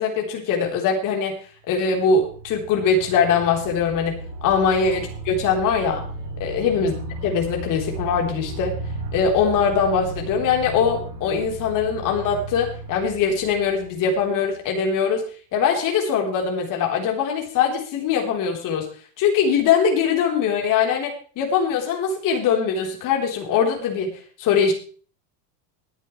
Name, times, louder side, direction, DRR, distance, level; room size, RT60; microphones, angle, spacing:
voice 1, 0.0-1.4 1.7-6.1 6.4-6.9 7.2-8.8 9.1-15.2 15.5-18.9 19.2-24.7, left 6 dB, 40° left, 1 dB, 4.0 m, -22 dB
sound 1, 1.7-14.5, right 2 dB, 60° right, 5.7 m, -35 dB
20.5 x 9.6 x 3.3 m, 0.41 s
supercardioid pair, 155°, 48 cm